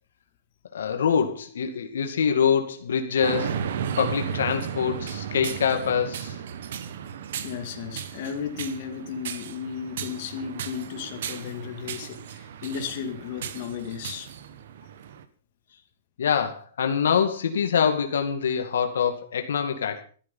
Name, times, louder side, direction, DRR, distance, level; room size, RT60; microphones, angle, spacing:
voice 1, 0.7-3.6 4.0-6.4 16.2-20.0, left 7 dB, 85° left, 2.3 m, -25 dB
sound 1, 3.2-15.2, right 8 dB, 70° right, 1.5 m, -35 dB
voice 2, 7.4-14.3, left 7 dB, 50° left, 2.3 m, -34 dB
13.5 x 13.0 x 5.5 m
hypercardioid pair, 145°, 0 cm